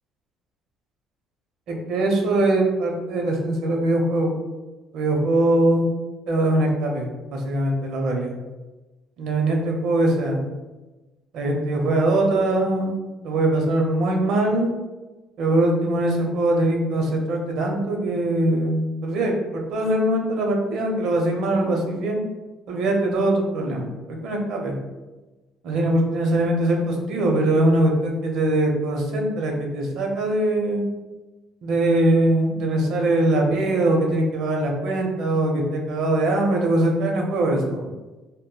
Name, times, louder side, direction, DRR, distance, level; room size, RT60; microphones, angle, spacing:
voice 1, 1.7-4.3 4.9-5.8 6.3-8.3 9.2-10.4 11.3-13.0 13.2-14.7 15.4-22.2 22.7-24.8 25.6-30.8 31.6-37.9, right 1 dB, 70° right, 1 dB, 0.6 m, -22 dB
2.1 x 2.1 x 3.7 m, 1.2 s
cardioid pair, 110°, 0 cm